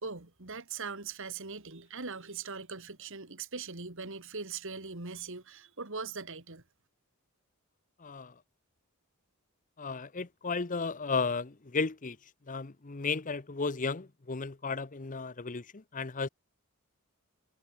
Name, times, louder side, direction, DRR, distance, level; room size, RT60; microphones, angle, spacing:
voice 1, 0.0-6.6, right 4 dB, 60° right, 2.5 m, -40 dB
voice 2, 8.0-8.3 9.8-12.2 12.5-16.3, left 4 dB, 35° left, 0.8 m, -34 dB
head